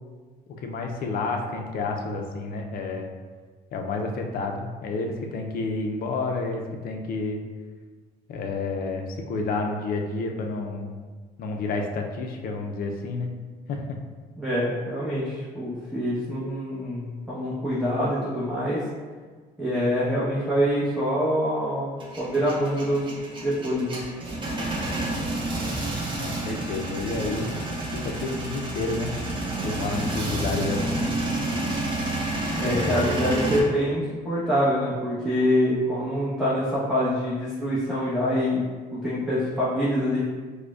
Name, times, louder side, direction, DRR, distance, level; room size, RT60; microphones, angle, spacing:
voice 1, 0.6-3.1 3.7-7.4 8.3-11.0 11.4-13.3 13.7-13.8 26.2-27.5 27.9-29.2 29.6-31.1 32.6-33.3, left 3 dB, 60° left, 3 dB, 0.5 m, -30 dB
voice 2, 14.4-18.8 19.6-21.9 22.2-23.1 23.4-24.0 32.6-38.6 38.9-40.2, equal, 5° right, -11 dB, 1.0 m, -25 dB
Male speech man speaking / Vehicle / Engine starting, 22.0-33.6, right 2 dB, 30° right, 0.8 m, -29 dB
4.7 x 2.2 x 2.4 m, 1.5 s
cardioid pair, 110°, 17 cm